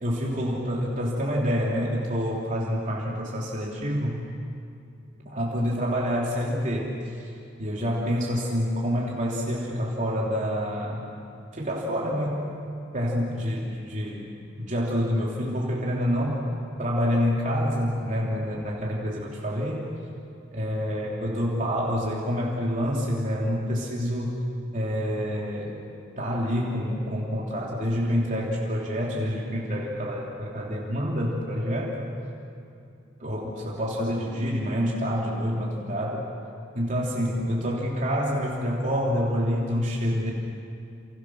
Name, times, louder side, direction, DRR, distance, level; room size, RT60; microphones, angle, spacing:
voice 1, 0.0-4.2 5.2-7.3 7.6-11.1 11.5-12.5 12.9-16.4 16.8-19.9 20.5-24.4 24.7-25.8 26.2-32.1 33.2-36.3 36.7-40.3, equal, 40° right, -4 dB, 3.2 m, -27 dB
29.5 x 29.5 x 6.3 m, 2.5 s
head